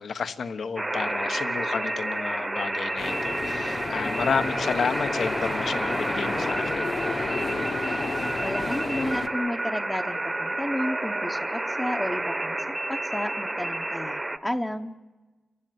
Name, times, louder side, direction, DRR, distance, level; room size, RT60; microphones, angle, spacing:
voice 1, 0.0-6.9, left 5 dB, 65° left, 10 dB, 1.2 m, -31 dB
sound 1, 0.8-14.4, right 2 dB, 15° right, 1.0 m, -30 dB
sound 2, 3.0-9.3, left 4 dB, 45° left, 1.4 m, -31 dB
voice 2, 8.4-14.9, left 1 dB, 10° left, 4 dB, 0.9 m, -32 dB
28.5 x 15.5 x 9.4 m, 1.2 s
wide cardioid pair, 145°, 0 cm